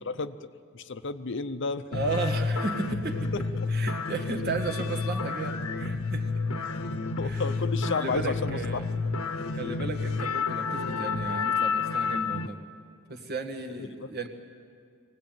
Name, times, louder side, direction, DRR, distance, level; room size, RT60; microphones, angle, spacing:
voice 1, 0.0-0.4 0.7-1.9 3.3-3.7 6.7-6.8 7.2-8.8 13.8-14.1, left 4 dB, 55° left, 11 dB, 0.7 m, -32 dB
sound 1, 1.9-12.5, left 4 dB, 80° left, 1.0 m, -30 dB
voice 2, 1.9-3.3 3.7-6.3 7.2-7.5 7.9-8.9 9.6-12.6 13.1-14.3, right 3 dB, 45° right, 6 dB, 1.8 m, -34 dB
23.5 x 18.0 x 9.1 m, 2.3 s
head